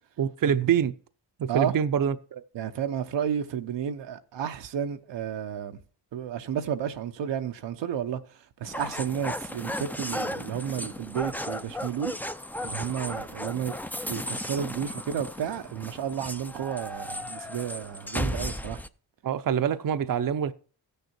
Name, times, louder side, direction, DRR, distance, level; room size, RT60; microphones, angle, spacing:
voice 1, 0.2-0.9 1.4-2.4 19.2-20.5, right 8 dB, 50° right, 0.7 m, -25 dB
voice 2, 2.5-5.8 6.1-12.1 12.6-13.7 14.1-18.8, right 9 dB, 80° right, 0.8 m, -32 dB
sound 1, 8.6-18.9, left 1 dB, 5° left, 0.5 m, -35 dB
14.0 x 6.7 x 4.5 m
cardioid pair, 55°, 43 cm